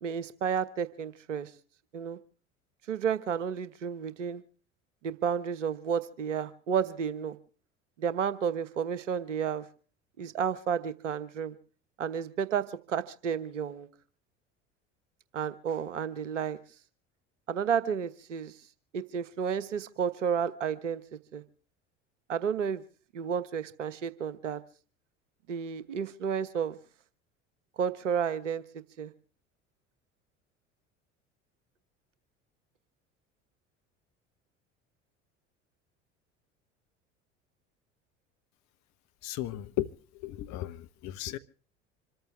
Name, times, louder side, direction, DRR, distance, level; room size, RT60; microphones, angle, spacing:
voice 1, 0.0-1.5 1.9-2.2 2.9-4.4 5.0-7.4 8.0-9.6 10.2-11.5 12.0-13.9 15.3-16.6 17.5-18.5 18.9-21.0 21.3-21.4 22.3-22.8 23.1-24.6 25.5-26.7 27.8-28.6 29.0-29.1, right 7 dB, 75° right, 1.3 m, -31 dB
voice 2, 39.2-39.9 40.2-41.4, left 14 dB, 50° left, 1.1 m, -35 dB
26.5 x 14.0 x 3.4 m
figure-of-eight pair, 65°, 37 cm